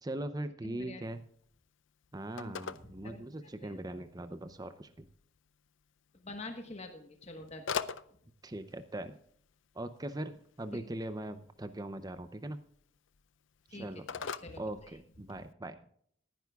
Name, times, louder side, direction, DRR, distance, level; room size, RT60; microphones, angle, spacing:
voice 1, 0.0-1.2 2.1-5.1 8.4-9.2 9.7-12.6 13.7-14.0 14.6-15.8, right 1 dB, 20° right, 10 dB, 0.6 m, -40 dB
voice 2, 0.6-1.1 2.4-3.2 3.6-3.8 6.2-7.6 10.7-10.8 13.7-14.6 15.3-15.4, left 2 dB, 35° left, 5 dB, 1.3 m, -46 dB
Telephone, 1.0-15.5, left 6 dB, 75° left, 0.5 m, -46 dB
19.0 x 10.5 x 2.3 m, 0.63 s
head